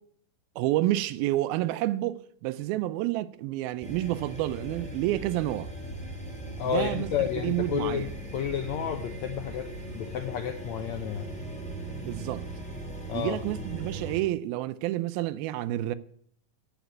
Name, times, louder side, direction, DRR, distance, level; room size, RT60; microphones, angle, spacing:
voice 1, 0.6-5.7 6.6-7.1 7.4-8.1 12.0-12.5 13.1-16.0, right 15 dB, 80° right, 2.4 m, -29 dB
sound 1, 3.8-14.2, right 1 dB, 5° left, 1.4 m, -39 dB
voice 2, 6.6-8.1 8.3-9.7 9.9-11.3 13.1-13.4, left 9 dB, 85° left, 1.5 m, -31 dB
14.0 x 5.1 x 9.4 m
omnidirectional pair, 4.3 m